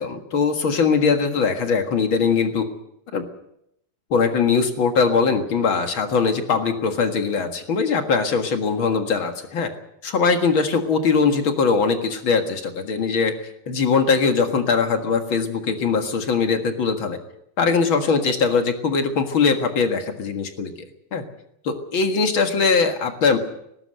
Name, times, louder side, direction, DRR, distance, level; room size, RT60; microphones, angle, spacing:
voice 1, 0.0-2.7 3.1-3.2 4.1-9.7 10.0-13.4 13.7-17.2 17.6-20.7 21.1-21.3 21.6-23.4, left 5 dB, 45° left, 6 dB, 1.7 m, -21 dB
19.0 x 17.5 x 8.0 m, 0.77 s
omnidirectional pair, 4.4 m